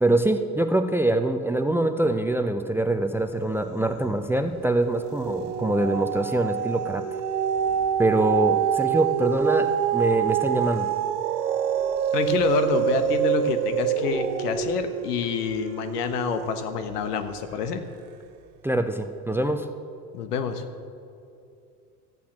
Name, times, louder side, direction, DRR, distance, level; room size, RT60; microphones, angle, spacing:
voice 1, 0.0-7.1 8.0-10.9 18.6-19.7, right 1 dB, 5° right, 8 dB, 0.6 m, -24 dB
sound 1, 3.7-4.3 4.6-17.1 17.7-17.8, right 10 dB, 65° right, 0.8 m, -26 dB
voice 2, 12.1-17.8 20.1-20.6, left 6 dB, 70° left, 8 dB, 1.3 m, -27 dB
13.5 x 8.6 x 7.4 m, 2.6 s
hypercardioid pair, 75°, 48 cm